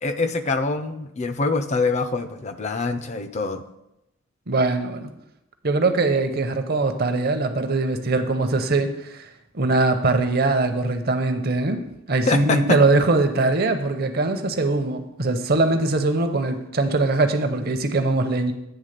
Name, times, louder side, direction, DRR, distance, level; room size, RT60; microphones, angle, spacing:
voice 1, 0.0-3.6 12.3-12.8, left 3 dB, 30° left, 10 dB, 0.4 m, -24 dB
voice 2, 4.5-5.1 5.6-9.3 9.5-11.8 12.1-18.5, right 2 dB, 45° right, 7 dB, 0.7 m, -21 dB
8.9 x 3.6 x 6.5 m, 0.86 s
head